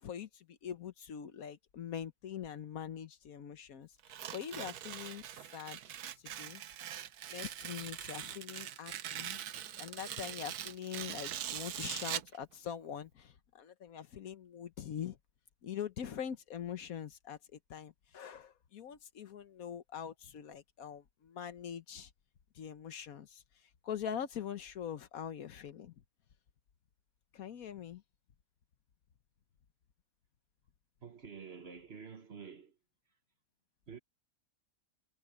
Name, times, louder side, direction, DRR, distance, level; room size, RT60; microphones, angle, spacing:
voice 1, 0.0-5.3 5.5-5.8 6.2-6.6 7.3-9.4 9.8-15.2 15.6-17.4 17.7-22.1 22.5-23.4 23.8-25.9 27.3-28.0, left 8 dB, 65° left, 1.3 m, -43 dB
Tearing, 4.0-12.4, right 11 dB, 75° right, 1.3 m, -42 dB
voice 2, 31.0-32.8 33.9-34.0, right 6 dB, 45° right, 1.2 m, -49 dB
omnidirectional pair, 1.7 m